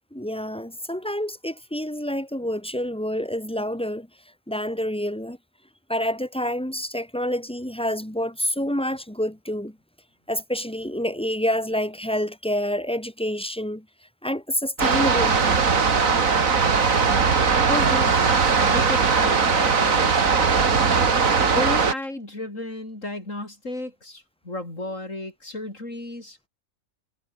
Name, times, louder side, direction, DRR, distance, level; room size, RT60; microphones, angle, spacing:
voice 1, 0.1-4.1 4.5-5.4 5.9-9.7 10.3-13.8 14.2-15.6, equal, 5° left, 2.8 m, -28 dB
sound 1, 14.8-21.9, right 5 dB, 75° right, 2.5 m, -19 dB
voice 2, 17.7-18.4 18.7-20.6 21.5-26.5, left 2 dB, 65° left, 7.0 m, -33 dB
omnidirectional pair, 1.4 m